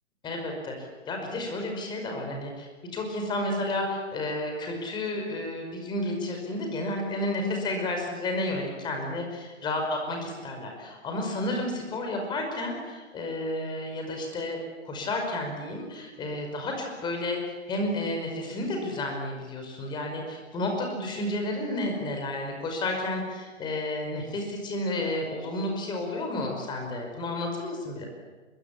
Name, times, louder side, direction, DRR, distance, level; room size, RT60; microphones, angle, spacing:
voice 1, 0.2-14.6 14.8-28.1, left 1 dB, 10° left, 2 dB, 5.4 m, -31 dB
26.5 x 22.0 x 10.0 m, 1.3 s
figure-of-eight pair, 145°, 39 cm